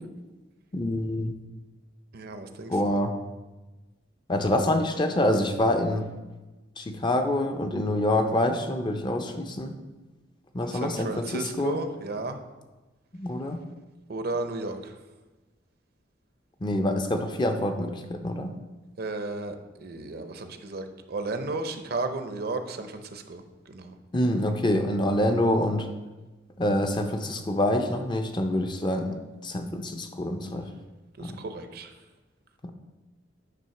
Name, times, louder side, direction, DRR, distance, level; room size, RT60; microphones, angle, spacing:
voice 1, 0.7-1.4 2.7-3.1 4.3-6.1 6.8-9.7 10.5-11.8 13.2-13.6 16.6-18.5 24.1-25.9 26.6-30.7 31.2-31.4 32.6-32.7, left 1 dB, 25° left, 6 dB, 0.5 m, -26 dB
voice 2, 2.1-3.0 10.6-12.5 14.1-14.9 19.0-24.0 31.2-31.9, right 2 dB, 55° right, 7 dB, 0.7 m, -34 dB
9.3 x 3.6 x 5.7 m, 1.2 s
head